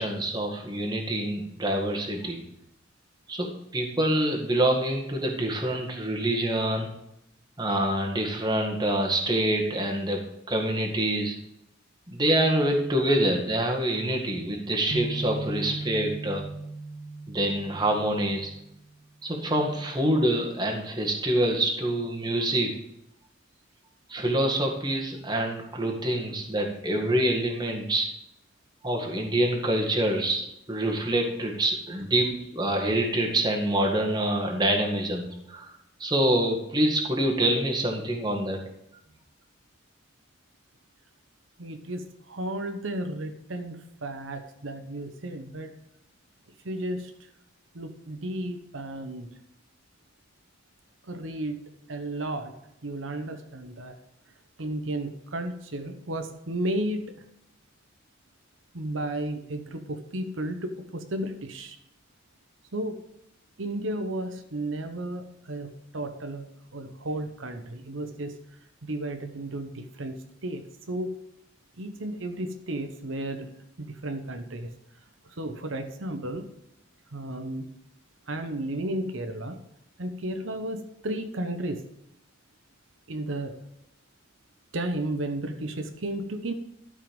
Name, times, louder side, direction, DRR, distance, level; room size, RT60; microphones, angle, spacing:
voice 1, 0.0-2.4 3.3-6.9 7.6-11.4 12.1-16.4 17.3-18.5 19.2-22.7 24.1-28.1 28.8-35.7 36.0-38.6, right 1 dB, 20° right, 1 dB, 1.8 m, -26 dB
sound 1, 14.9-18.9, right 3 dB, 60° right, 1.2 m, -37 dB
voice 2, 41.6-45.7 46.6-47.1 47.7-49.3 51.1-51.6 51.9-52.5 52.8-53.9 54.6-57.2 58.7-61.8 62.7-63.0 63.6-66.4 66.7-68.4 68.8-70.6 70.9-71.2 71.8-73.5 73.8-74.7 75.4-76.5 77.1-77.7 78.3-79.6 80.0-81.8 83.1-83.6 84.7-86.5, right 1 dB, 80° right, 7 dB, 1.0 m, -33 dB
12.5 x 5.6 x 5.2 m, 0.80 s
head